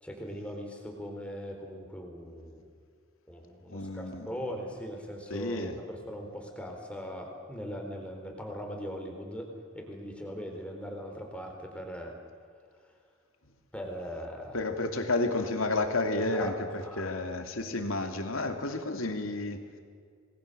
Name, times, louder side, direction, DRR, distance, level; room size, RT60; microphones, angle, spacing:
voice 1, 0.0-2.7 3.3-9.5 9.7-12.1 13.7-14.6 16.1-17.1, equal, 5° left, 2 dB, 4.0 m, -40 dB
voice 2, 3.7-4.3 5.3-5.8 14.5-19.6, left 2 dB, 85° left, 5 dB, 2.7 m, -31 dB
27.0 x 20.5 x 6.9 m, 2.1 s
head